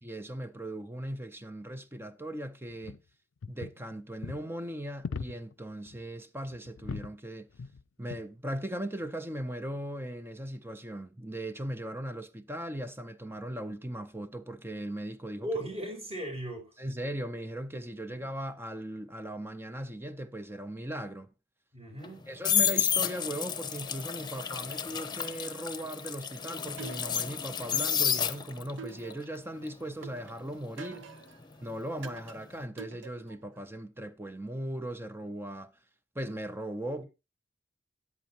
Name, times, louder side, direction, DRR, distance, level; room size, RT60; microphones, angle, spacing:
voice 1, 0.0-3.0 3.5-7.5 8.0-15.5 16.8-21.3 22.3-31.1 31.6-35.7 36.1-37.0, right 1 dB, 10° right, 0.6 m, -38 dB
sound 1, 2.8-3.0 3.4-3.9 4.2-4.4 5.0-5.5 5.9-6.0 6.4-7.1 7.5-7.8 8.1-8.3 9.0-9.2, left 5 dB, 80° left, 0.5 m, -40 dB
voice 2, 15.4-16.7 18.1-18.2 21.7-22.3 36.9-37.1, right 1 dB, 35° right, 5.2 m, -37 dB
sound 2, 22.0-28.8 29.1-32.0 32.3-32.6, left 8 dB, 25° left, 0.9 m, -31 dB
sound 3, 26.8-27.5 28.0-29.5 30.0-31.4 32.0-33.5, right 5 dB, 75° right, 1.0 m, -47 dB
14.0 x 9.4 x 2.9 m
head